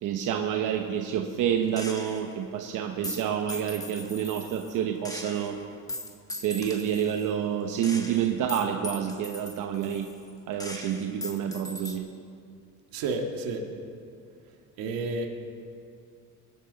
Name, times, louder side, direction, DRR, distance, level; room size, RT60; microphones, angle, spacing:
voice 1, 0.0-5.6 6.4-10.1 10.5-12.1, right 9 dB, 60° right, 4 dB, 1.0 m, -28 dB
Gunshot gunfire, 1.8-2.4 3.0-4.7 5.0-7.3 7.8-10.3 10.6-12.0, left 1 dB, 10° left, 1.5 m, -39 dB
voice 2, 12.9-13.6 14.8-15.3, right 3 dB, 80° right, 1 dB, 1.8 m, -30 dB
23.5 x 12.0 x 4.0 m, 2.4 s
cardioid pair, 120°, 36 cm